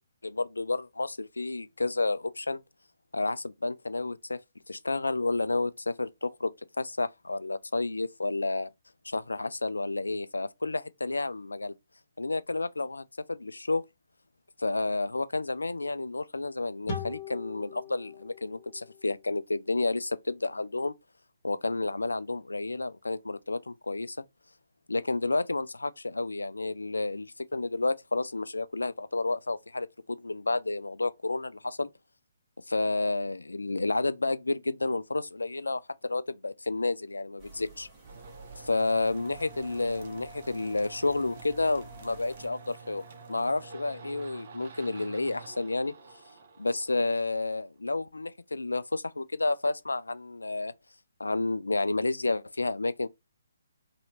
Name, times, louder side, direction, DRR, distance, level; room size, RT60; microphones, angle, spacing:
voice 1, 0.2-2.6 3.1-4.4 4.7-6.5 6.8-8.7 9.0-11.7 12.2-13.8 14.6-20.9 21.4-24.2 24.9-31.9 32.7-37.9 38.6-45.9 46.6-50.7 51.2-53.1, left 3 dB, 90° left, 0.3 m, -30 dB
sound 1, 16.9-20.2, left 4 dB, 35° left, 1.4 m, -42 dB
sound 2, 37.4-42.5, right 3 dB, 20° right, 1.3 m, -51 dB
sound 3, 38.0-47.6, right 4 dB, 50° right, 0.7 m, -48 dB
3.0 x 2.7 x 2.7 m
figure-of-eight pair, 140°, 0 cm